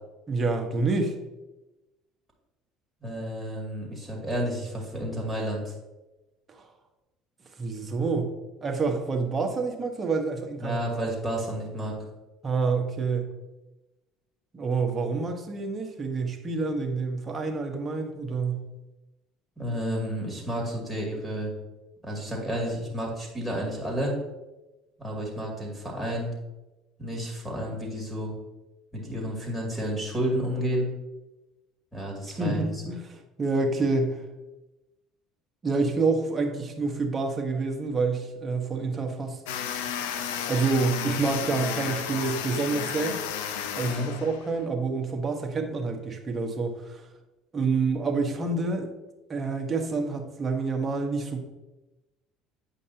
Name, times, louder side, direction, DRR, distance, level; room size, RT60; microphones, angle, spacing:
voice 1, 0.3-1.2 6.5-6.7 7.6-8.3 8.6-10.8 12.4-13.2 14.5-18.6 32.4-34.2 35.6-39.4 40.5-43.2 43.7-47.0 47.5-48.9 49.3-51.4, right 4 dB, 30° right, 3 dB, 1.2 m, -28 dB
voice 2, 3.0-5.7 10.6-12.0 19.6-21.5 22.0-24.1 25.0-26.3 27.0-28.3 28.9-30.9 31.9-32.8 43.8-44.1, equal, 5° right, -3 dB, 2.4 m, -31 dB
sound 1, 39.5-44.6, left 8 dB, 90° left, 0.5 m, -33 dB
8.6 x 5.2 x 2.8 m, 1.0 s
supercardioid pair, 95°, 0 cm